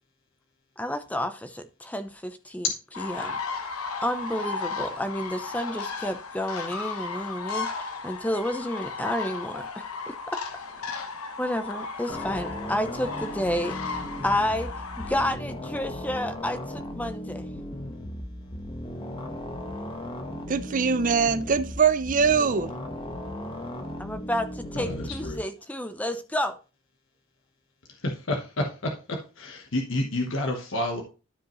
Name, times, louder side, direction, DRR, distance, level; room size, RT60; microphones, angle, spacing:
voice 1, 0.8-2.7 3.0-3.4 4.0-9.7 10.1-10.2 11.4-14.7 15.0-17.5 24.0-26.5, left 1 dB, 5° left, 0.6 m, -30 dB
sound 1, 2.9-15.4, left 4 dB, 80° left, 1.0 m, -35 dB
sound 2, 12.1-25.4, left 1 dB, 25° left, 1.2 m, -37 dB
voice 2, 20.5-22.7, right 5 dB, 40° right, 0.5 m, -22 dB
voice 3, 24.7-25.4 28.0-31.0, left 1 dB, 60° left, 1.1 m, -30 dB
12.5 x 5.1 x 3.1 m
head